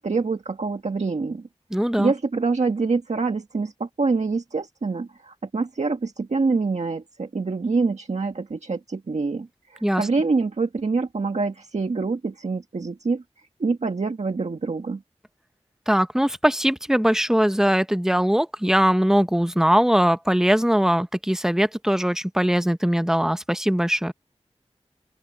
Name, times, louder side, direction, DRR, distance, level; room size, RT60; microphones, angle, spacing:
voice 1, 0.0-1.5 2.0-13.2 13.6-15.0, right 4 dB, 85° right, 1.6 m, -25 dB
voice 2, 1.7-2.1 9.8-10.0 15.9-24.1, equal, 5° right, 0.8 m, -21 dB
open air
wide cardioid pair, 55°, 11 cm